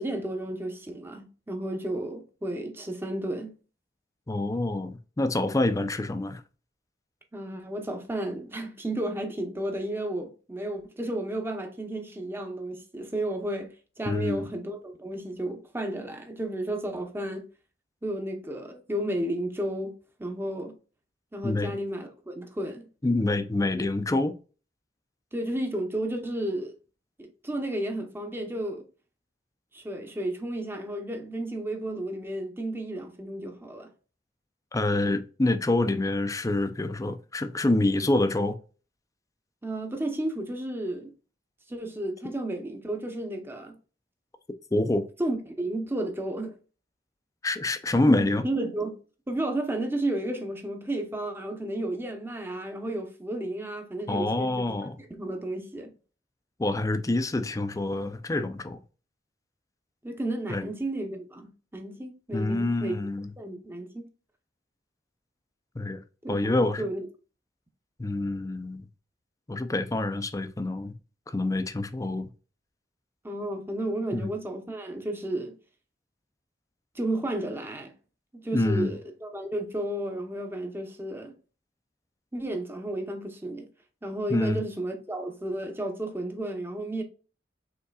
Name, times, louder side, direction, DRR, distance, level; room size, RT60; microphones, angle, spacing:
voice 1, 0.0-3.5 7.3-13.7 14.0-17.4 18.0-19.9 20.2-20.7 21.3-22.9 25.3-26.7 27.2-28.8 29.7-33.9 39.6-41.1 41.7-43.8 45.2-46.6 48.4-49.0 49.3-54.7 55.1-55.9 60.0-62.9 63.4-64.0 66.2-67.0 73.2-75.6 76.9-77.9 78.4-81.3 82.3-83.7 84.0-87.0, right 1 dB, 15° right, 0.8 m, -32 dB
voice 2, 4.3-6.4 14.1-14.5 21.4-21.7 23.0-24.4 34.7-38.6 44.7-45.1 47.4-48.4 54.1-55.0 56.6-58.8 60.5-60.6 62.3-63.3 65.8-66.0 66.3-66.9 68.0-68.8 69.5-70.9 71.3-72.3 74.1-74.3 78.5-79.0 84.3-84.6, left 2 dB, 20° left, 0.5 m, -26 dB
5.4 x 3.7 x 2.3 m
head